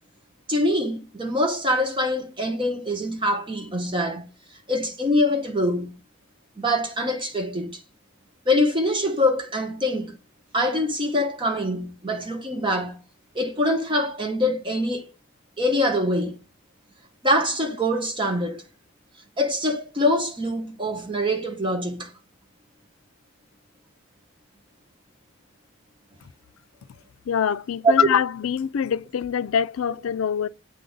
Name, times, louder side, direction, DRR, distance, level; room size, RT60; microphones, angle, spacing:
voice 1, 0.5-4.3 4.7-6.0 6.6-7.8 8.5-10.1 10.5-13.0 13.3-15.1 15.6-16.4 17.2-18.6 19.4-22.1 27.8-27.9, left 1 dB, 25° right, 0.9 m, -24 dB
voice 2, 27.3-30.5, left 7 dB, 80° left, 0.4 m, -24 dB
8.3 x 3.9 x 5.0 m
head